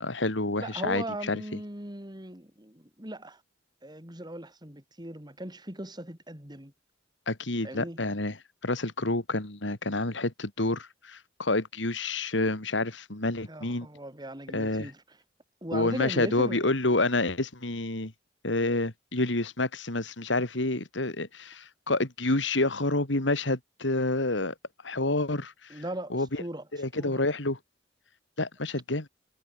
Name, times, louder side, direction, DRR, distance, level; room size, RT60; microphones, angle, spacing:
voice 1, 0.0-1.6 7.3-8.4 8.6-13.9 14.5-14.9 15.7-18.1 18.4-24.5 24.8-25.8 26.1-26.4 26.7-27.6 28.4-29.1, left 2 dB, 75° left, 2.7 m, -28 dB
voice 2, 0.6-3.4 3.8-6.7 7.6-8.0 13.5-15.0 15.6-16.7 25.7-26.6 26.9-27.2, right 1 dB, 25° right, 4.9 m, -38 dB
head